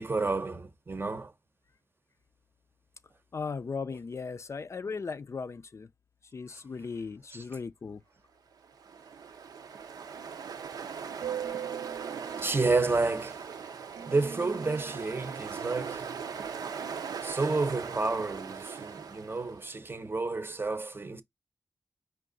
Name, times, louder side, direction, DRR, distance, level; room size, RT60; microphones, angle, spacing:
voice 1, 0.0-1.3 12.4-13.5 14.1-16.2 17.2-21.2, right 3 dB, 35° right, 0.7 m, -30 dB
voice 2, 3.3-5.9 6.3-8.0, left 5 dB, 45° left, 0.4 m, -37 dB
Ocean, 8.6-19.7, right 7 dB, 85° right, 0.6 m, -39 dB
4.7 x 2.5 x 3.8 m
cardioid pair, 55°, 6 cm